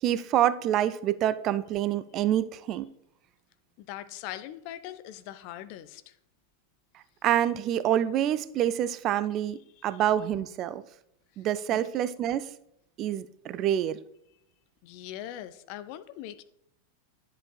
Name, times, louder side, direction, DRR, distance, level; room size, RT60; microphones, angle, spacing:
voice 1, 0.0-2.9 7.2-10.8 11.4-12.5 13.0-14.0, right 11 dB, 35° right, 0.3 m, -27 dB
voice 2, 3.8-6.2 9.8-10.0 11.7-11.8 14.8-16.4, left 12 dB, 45° left, 0.5 m, -41 dB
11.0 x 7.4 x 2.3 m
figure-of-eight pair, 90°, 0 cm